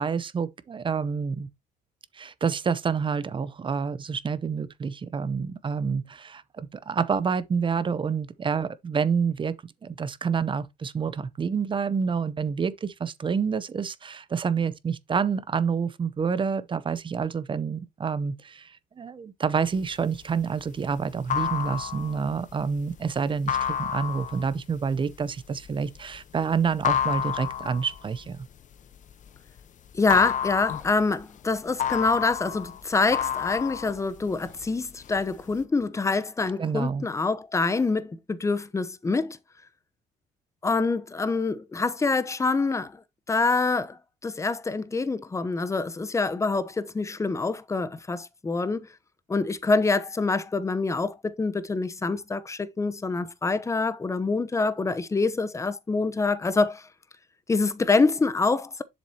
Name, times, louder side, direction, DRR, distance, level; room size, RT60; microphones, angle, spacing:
voice 1, 0.0-1.5 2.1-9.5 9.8-28.5 36.6-37.0, right 6 dB, 30° right, 0.7 m, -28 dB
sound 1, 19.8-29.6 29.9-34.7 35.0-35.6, left 9 dB, 50° left, 1.0 m, -30 dB
voice 2, 29.9-39.4 40.6-43.0 43.3-44.0 44.2-48.9 49.3-56.8 57.5-58.8, left 3 dB, 15° left, 0.8 m, -26 dB
7.3 x 7.2 x 2.8 m
cardioid pair, 110°, 17 cm